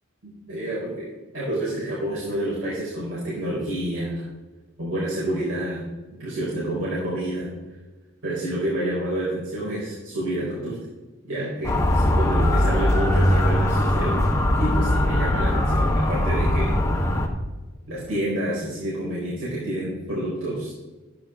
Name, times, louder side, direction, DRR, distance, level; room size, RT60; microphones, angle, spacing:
voice 1, 0.2-1.1 1.3-4.3 4.8-5.9 6.2-7.5 8.2-10.8 11.3-14.2 14.6-17.2 17.9-20.7, right 1 dB, 80° right, -7 dB, 4.2 m, -28 dB
Motor vehicle (road) / Siren, 11.6-17.3, left 1 dB, 15° left, 1.5 m, -21 dB
13.0 x 10.5 x 3.6 m, 1.2 s
head